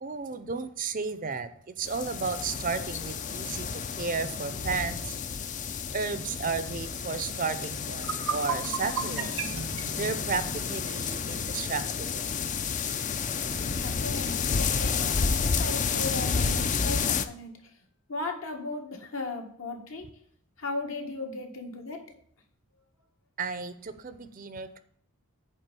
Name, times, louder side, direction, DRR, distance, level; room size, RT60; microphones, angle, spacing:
voice 1, 0.0-1.5 1.8-5.2 5.9-12.3 23.4-24.8, right 4 dB, 40° right, 12 dB, 0.5 m, -33 dB
sound 1, 1.9-17.3, left 5 dB, 35° left, 0.4 m, -31 dB
sound 2, 7.9-11.0, right 7 dB, 70° right, 0.8 m, -35 dB
voice 2, 13.8-17.5 18.1-20.0 20.6-22.0, left 2 dB, 65° left, 3 dB, 1.7 m, -36 dB
9.0 x 3.6 x 6.8 m, 0.65 s
head